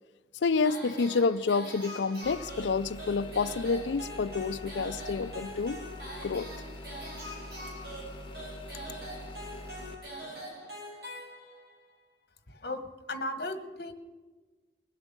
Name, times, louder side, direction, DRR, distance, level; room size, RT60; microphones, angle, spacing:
voice 1, 0.4-5.8 6.2-6.5, left 4 dB, 90° left, 0.5 m, -29 dB
sound 1, 0.6-11.8, right 1 dB, 60° right, 6.0 m, -43 dB
sound 2, 2.2-9.9, left 2 dB, 30° left, 1.4 m, -44 dB
voice 2, 12.5-13.9, left 1 dB, 60° left, 1.4 m, -36 dB
20.5 x 8.1 x 6.9 m
head